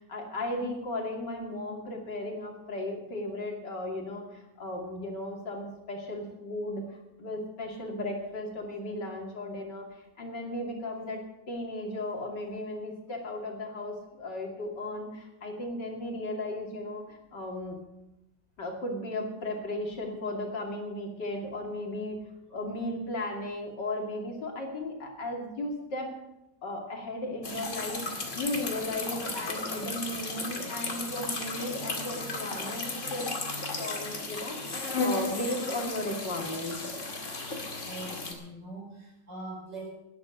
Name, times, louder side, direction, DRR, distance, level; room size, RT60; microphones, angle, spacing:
voice 1, 0.0-11.2 11.5-17.8 18.6-22.2 22.5-26.1 26.6-33.3 33.8-36.8, left 1 dB, 75° left, 1 dB, 3.2 m, -35 dB
sound 1, 27.4-38.3, left 3 dB, 45° left, 2.5 m, -35 dB
voice 2, 37.8-39.9, right 2 dB, 70° right, -1 dB, 5.4 m, -42 dB
12.5 x 10.5 x 7.8 m, 0.92 s
omnidirectional pair, 1.9 m